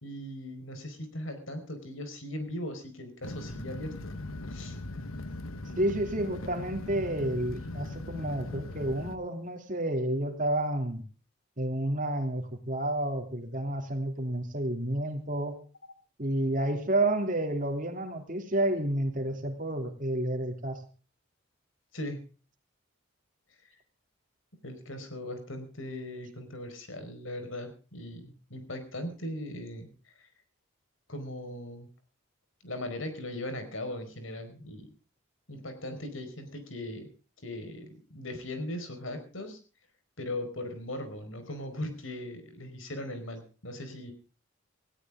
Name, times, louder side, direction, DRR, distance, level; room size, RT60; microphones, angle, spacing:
voice 1, 0.0-4.1 4.5-4.8 21.9-22.2 24.6-30.3 31.1-31.9 32.6-34.9 35.5-37.1 37.4-39.6 40.2-44.1, left 1 dB, 70° left, 8 dB, 4.8 m, -39 dB
sound 1, 3.2-9.2, left 2 dB, 85° left, 1.2 m, -39 dB
voice 2, 5.8-11.0 11.6-15.6 16.2-20.8, right 1 dB, 40° right, 5 dB, 2.8 m, -30 dB
18.5 x 16.5 x 3.6 m, 0.37 s
head